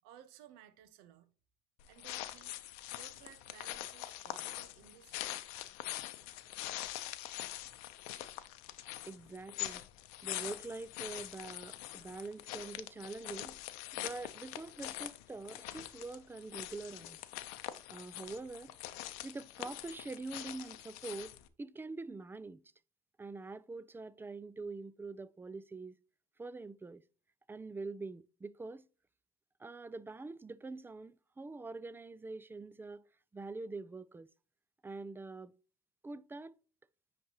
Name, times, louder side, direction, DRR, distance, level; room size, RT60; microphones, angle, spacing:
voice 1, 0.0-1.3 1.9-5.7, right 10 dB, 80° right, 0.9 m, -58 dB
sound 1, 1.8-21.5, left 15 dB, 85° left, 0.7 m, -44 dB
voice 2, 9.1-9.9 10.2-13.6 13.9-17.2 17.9-18.8 19.2-21.3 21.6-22.6 23.2-26.0 26.4-27.0 27.5-28.9 29.6-33.0 33.3-34.3 34.8-35.5 36.0-36.5, right 3 dB, 10° right, 0.4 m, -45 dB
9.9 x 3.4 x 2.9 m
supercardioid pair, 95°, 18 cm